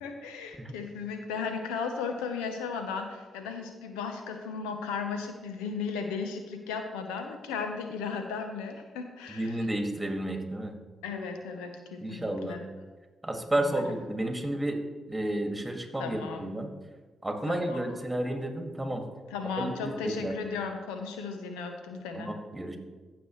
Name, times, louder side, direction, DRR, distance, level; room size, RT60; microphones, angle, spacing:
voice 1, 0.0-9.6 11.0-12.6 13.6-13.9 16.0-16.5 17.5-17.9 19.3-22.3, left 5 dB, 85° left, 6 dB, 0.8 m, -36 dB
voice 2, 9.3-10.8 12.0-12.6 13.2-16.7 17.2-19.0 19.6-20.3 22.1-22.8, right 1 dB, 15° right, 3 dB, 1.9 m, -32 dB
15.0 x 6.1 x 3.1 m, 1.3 s
hypercardioid pair, 40°, 0 cm